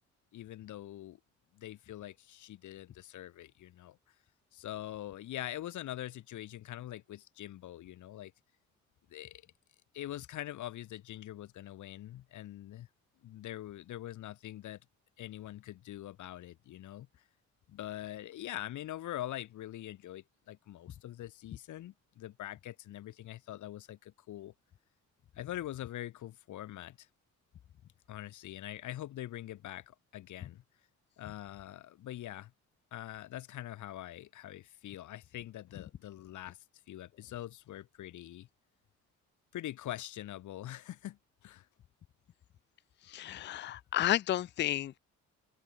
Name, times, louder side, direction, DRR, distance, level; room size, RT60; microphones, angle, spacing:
voice 1, 0.3-1.2 1.5-4.0 4.5-8.3 9.1-9.5 9.9-12.9 13.2-14.8 15.2-17.1 17.7-24.5 25.4-27.1 28.1-30.6 31.2-32.5 32.9-36.6 36.9-38.5 39.5-41.7, left 13 dB, 75° left, 2.2 m, -43 dB
voice 2, 43.1-45.0, left 13 dB, 40° left, 0.4 m, -32 dB
cardioid pair, 90°, 30 cm